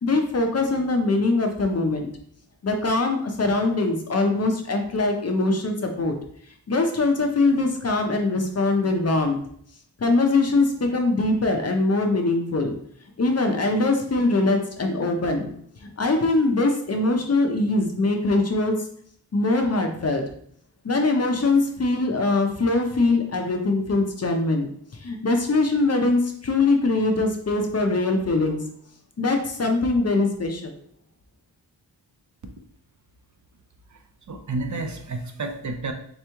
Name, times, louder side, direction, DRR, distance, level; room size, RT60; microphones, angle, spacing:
voice 1, 0.0-2.1 2.6-6.2 6.7-9.4 10.0-12.8 13.2-15.5 16.0-18.8 19.3-20.2 20.8-24.7 25.0-28.6 29.2-30.7, left 2 dB, 35° left, 4 dB, 0.5 m, -22 dB
voice 2, 34.3-35.9, right 3 dB, 45° right, 5 dB, 0.4 m, -30 dB
3.4 x 3.0 x 3.4 m, 0.63 s
wide cardioid pair, 135°, 43 cm